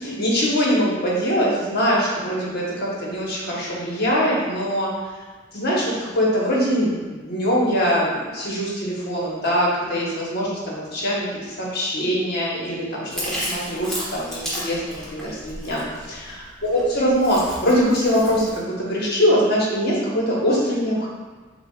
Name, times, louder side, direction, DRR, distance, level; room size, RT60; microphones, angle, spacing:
voice 1, 0.0-4.9 5.5-15.8 16.1-21.1, equal, 60° left, -5 dB, 1.1 m, -22 dB
Chewing mastication, 13.1-18.6, equal, ahead, 0.9 m, -33 dB
6.8 x 2.4 x 2.3 m, 1.3 s
head